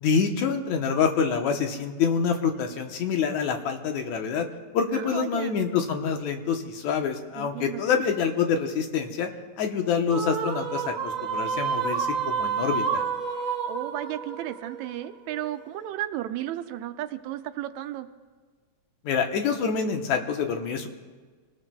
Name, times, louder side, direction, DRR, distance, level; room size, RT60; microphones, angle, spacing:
voice 1, 0.0-4.5 4.7-9.3 9.6-13.0 19.0-20.9, left 6 dB, 75° left, 4 dB, 2.4 m, -26 dB
voice 2, 4.9-5.6 7.4-8.0 13.7-18.1, right 13 dB, 80° right, 9 dB, 1.9 m, -34 dB
sound 1, 10.1-15.5, right 6 dB, 50° right, 1.0 m, -29 dB
27.5 x 19.0 x 2.3 m, 1.5 s
omnidirectional pair, 3.3 m